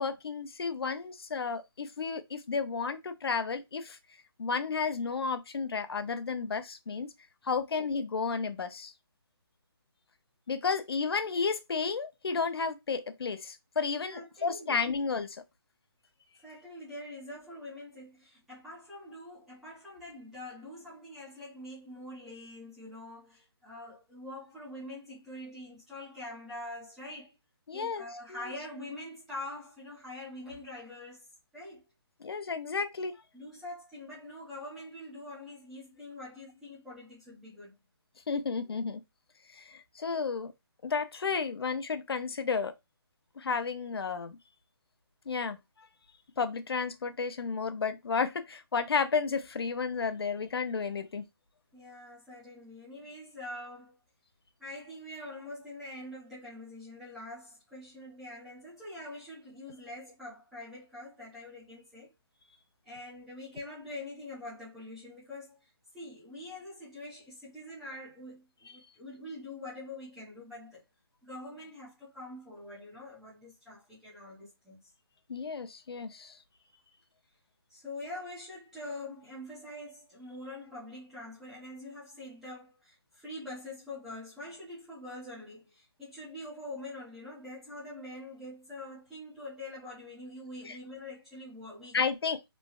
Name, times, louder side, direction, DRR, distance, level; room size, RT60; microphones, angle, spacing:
voice 1, 0.0-4.0 4.4-7.1 7.4-8.9 10.5-15.4 27.7-28.5 32.2-33.2 38.3-39.0 39.6-40.5 40.8-42.7 43.4-44.4 45.3-45.6 46.4-51.2 75.3-76.3 90.7-90.8 91.9-92.5, left 5 dB, 70° left, 0.6 m, -32 dB
voice 2, 14.1-14.9 16.4-27.3 27.7-31.3 31.5-31.8 33.3-37.7 51.7-54.0 54.6-62.1 62.8-70.8 71.2-74.8 77.7-92.0, left 1 dB, ahead, 0.4 m, -44 dB
3.1 x 2.6 x 2.3 m
hypercardioid pair, 170°, 13 cm